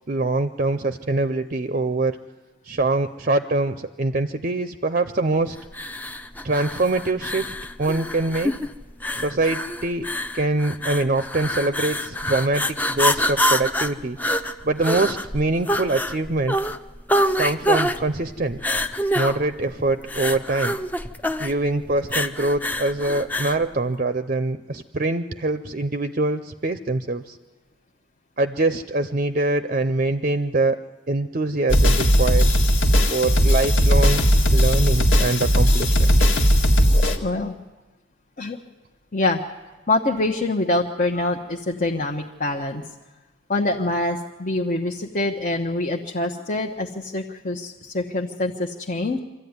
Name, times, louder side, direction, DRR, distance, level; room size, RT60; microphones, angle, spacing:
voice 1, 0.1-2.2 2.6-5.6 6.4-8.5 9.2-10.0 10.3-14.2 14.6-16.6 17.4-18.6 19.1-20.8 21.4-27.4 28.4-30.8 31.1-32.5 33.1-34.2 34.5-36.1, right 2 dB, 40° right, 9 dB, 0.6 m, -24 dB
sound 1, 5.7-23.6, equal, 10° left, 0.7 m, -26 dB
sound 2, 31.7-37.2, equal, 75° left, 1.9 m, -17 dB
voice 2, 37.2-37.5 38.4-38.6 39.1-39.4 39.9-42.9 43.5-49.2, left 2 dB, 40° left, 2 dB, 1.0 m, -25 dB
24.5 x 14.0 x 9.6 m, 1.2 s
head